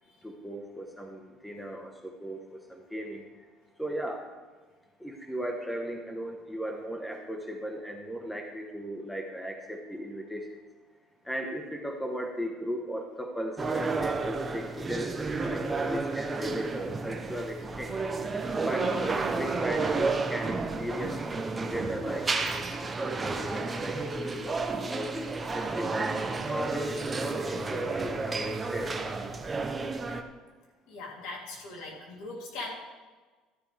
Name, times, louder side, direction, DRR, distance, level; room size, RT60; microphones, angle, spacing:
voice 1, 0.2-3.3 3.8-4.3 5.0-10.5 11.2-17.9 18.6-26.1 26.5-28.9, equal, 5° left, 2 dB, 1.1 m, -37 dB
sound 1, 13.6-30.2, right 3 dB, 20° right, 0.8 m, -31 dB
voice 2, 30.9-32.7, left 3 dB, 80° left, -2 dB, 3.2 m, -40 dB
12.5 x 11.0 x 3.4 m, 1.3 s
cardioid pair, 140°, 0 cm